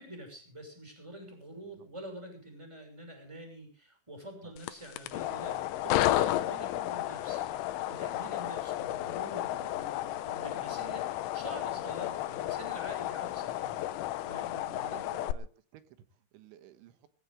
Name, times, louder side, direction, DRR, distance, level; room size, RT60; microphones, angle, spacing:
voice 1, 0.0-15.1, right 1 dB, 5° right, 5 dB, 5.7 m, -47 dB
sound 1, 4.6-15.3, left 14 dB, 85° left, 3.4 m, -33 dB
sound 2, 6.2-13.7, left 5 dB, 70° left, 5.8 m, -61 dB
voice 2, 14.7-17.1, right 11 dB, 75° right, 10 dB, 3.6 m, -54 dB
21.5 x 17.0 x 3.5 m, 0.38 s
omnidirectional pair, 5.5 m